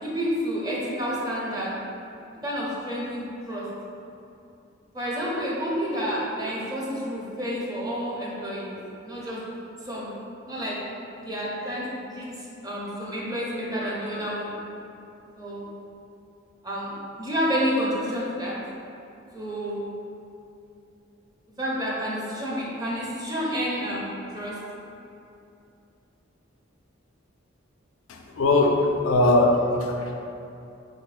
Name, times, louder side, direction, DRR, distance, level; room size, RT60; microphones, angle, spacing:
voice 1, 0.0-1.7 2.4-3.7 4.9-8.8 9.0-9.4 9.8-10.1 10.5-10.8 11.2-14.5 15.4-15.7 16.6-18.5 19.3-19.8 21.6-24.6, equal, 20° right, -6 dB, 0.6 m, -29 dB
voice 2, 28.1-30.1, left 2 dB, 90° left, 1 dB, 0.4 m, -21 dB
3.8 x 2.1 x 3.1 m, 2.7 s
head